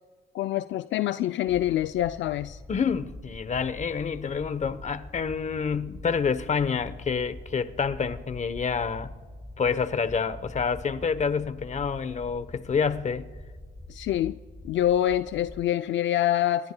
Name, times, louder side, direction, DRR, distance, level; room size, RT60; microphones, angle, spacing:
voice 1, 0.3-2.6 13.9-14.4 14.6-16.7, left 12 dB, 70° left, 0.4 m, -26 dB
sound 1, 1.5-15.6, left 1 dB, 15° left, 4.4 m, -44 dB
voice 2, 2.7-9.1 9.6-13.3, left 6 dB, 35° left, 0.8 m, -28 dB
27.0 x 21.0 x 2.2 m
cardioid pair, 90°, 20 cm